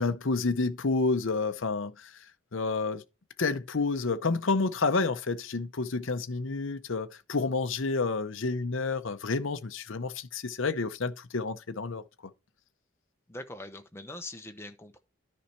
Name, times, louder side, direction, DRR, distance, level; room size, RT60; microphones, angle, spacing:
voice 1, 0.0-2.1 2.5-3.0 3.4-12.0, left 3 dB, 60° left, 0.7 m, -29 dB
voice 2, 13.3-15.0, left 2 dB, 10° left, 0.9 m, -42 dB
10.0 x 5.4 x 4.4 m
head